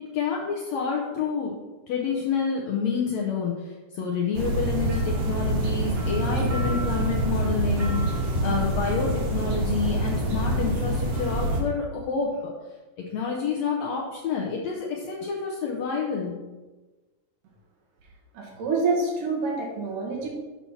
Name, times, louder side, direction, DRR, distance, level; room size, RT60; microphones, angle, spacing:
voice 1, 0.1-1.5 1.9-7.9 8.4-12.3 13.0-16.4, left 5 dB, 70° left, -2 dB, 1.7 m, -28 dB
sound 1, 4.3-11.6, right 1 dB, 60° right, 1.9 m, -26 dB
voice 2, 18.3-20.3, right 3 dB, 85° right, -2 dB, 3.1 m, -27 dB
7.1 x 6.0 x 4.2 m, 1.2 s
omnidirectional pair, 3.7 m